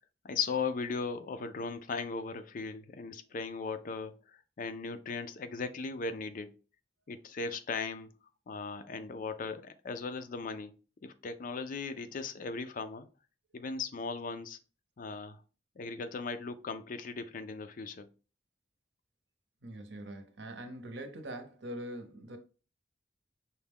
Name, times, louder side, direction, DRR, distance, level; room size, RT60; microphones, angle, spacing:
voice 1, 0.2-6.5 7.1-8.1 8.5-10.8 11.0-13.1 13.5-14.6 15.0-15.4 15.8-18.1, left 4 dB, 50° left, 0.4 m, -38 dB
voice 2, 19.6-22.4, right 1 dB, 75° right, 0.8 m, -43 dB
5.7 x 2.2 x 3.5 m
head